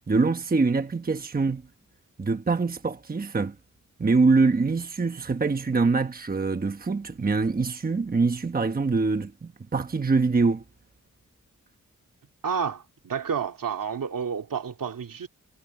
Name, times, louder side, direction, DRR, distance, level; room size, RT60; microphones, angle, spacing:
voice 1, 0.1-1.6 2.2-3.6 4.0-10.6, right 4 dB, 25° right, 1.1 m, -24 dB
voice 2, 12.4-15.3, right 6 dB, 80° right, 2.7 m, -30 dB
wide cardioid pair, 145°, 33 cm